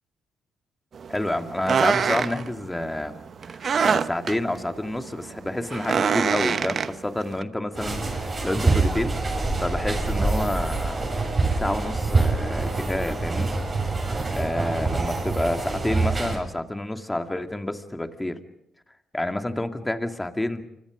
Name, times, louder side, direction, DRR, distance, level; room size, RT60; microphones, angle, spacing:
sound 1, 0.9-7.4, right 6 dB, 50° right, 1.0 m, -26 dB
voice 1, 1.1-3.2 3.5-9.2 9.6-11.0 11.5-13.5 14.3-18.4 19.1-20.7, left 1 dB, 10° left, 6 dB, 2.4 m, -29 dB
sound 2, 7.7-16.4, right 3 dB, 30° right, 7.5 m, -25 dB
28.5 x 25.5 x 5.2 m, 0.81 s
cardioid pair, 90°, 0 cm